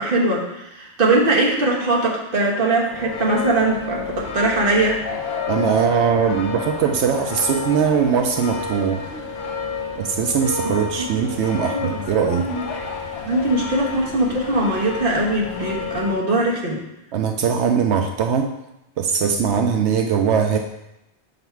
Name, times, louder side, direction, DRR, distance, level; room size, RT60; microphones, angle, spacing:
voice 1, 0.0-5.0 10.6-10.8 11.7-12.0 12.3-12.6 13.2-16.8, right 2 dB, 50° right, -3 dB, 1.4 m, -21 dB
sound 1, 2.9-16.2, left 4 dB, 70° left, 1.0 m, -30 dB
voice 2, 5.5-9.0 10.0-12.5 17.1-18.5 19.0-20.6, right 7 dB, 75° right, 4 dB, 0.8 m, -20 dB
6.9 x 4.0 x 4.5 m, 0.90 s
omnidirectional pair, 1.2 m